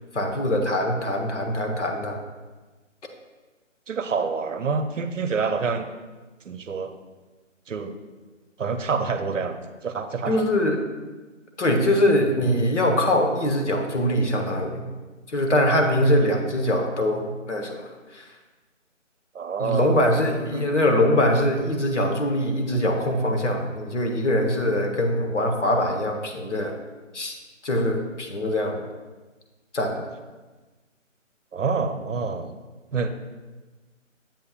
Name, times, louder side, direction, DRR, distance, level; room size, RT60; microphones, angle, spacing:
voice 1, 0.1-2.2 10.3-10.8 11.6-14.9 15.3-18.3 19.6-26.8 27.1-27.3 27.6-28.8 29.7-30.0, left 1 dB, 65° left, 3 dB, 1.1 m, -23 dB
voice 2, 3.9-5.9 6.4-6.9 7.7-7.9 8.6-9.6 9.8-10.4 19.3-20.0 20.5-20.6 31.5-32.6 32.9-33.1, right 5 dB, 70° right, 9 dB, 0.7 m, -27 dB
7.5 x 7.1 x 2.4 m, 1.3 s
figure-of-eight pair, 170°, 39 cm